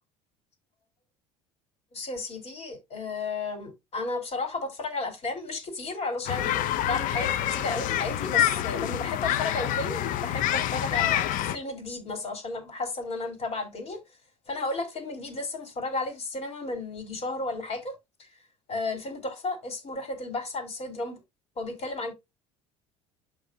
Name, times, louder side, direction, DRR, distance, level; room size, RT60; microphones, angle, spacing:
voice 1, 1.9-14.0 14.5-17.9 18.7-21.2 21.6-22.2, left 3 dB, 45° left, 4.1 m, -33 dB
sound 1, 6.3-11.6, left 11 dB, 60° left, 0.8 m, -27 dB
11.5 x 4.1 x 2.7 m
hypercardioid pair, 75°, 15 cm